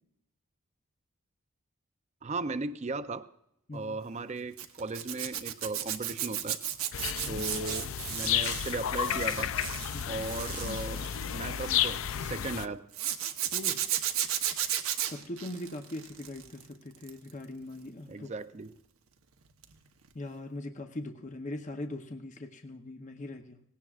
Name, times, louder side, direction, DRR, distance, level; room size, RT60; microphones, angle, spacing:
voice 1, 2.2-3.2 3.7-6.6 7.2-9.5 10.1-11.1 11.3-12.8 18.1-18.7, right 3 dB, 30° right, 11 dB, 0.5 m, -37 dB
Zipper (clothing), 4.6-12.0 12.9-16.6 16.9-17.3 19.6-19.8 20.0-20.1, right 11 dB, 75° right, 1.0 m, -34 dB
sound 1, 6.9-12.7, left 10 dB, 65° left, 0.4 m, -32 dB
voice 2, 7.0-7.5 9.9-10.3 13.5-13.8 15.1-18.3 20.1-23.6, left 1 dB, 35° left, 5 dB, 0.8 m, -41 dB
19.0 x 17.0 x 2.4 m, 0.79 s
head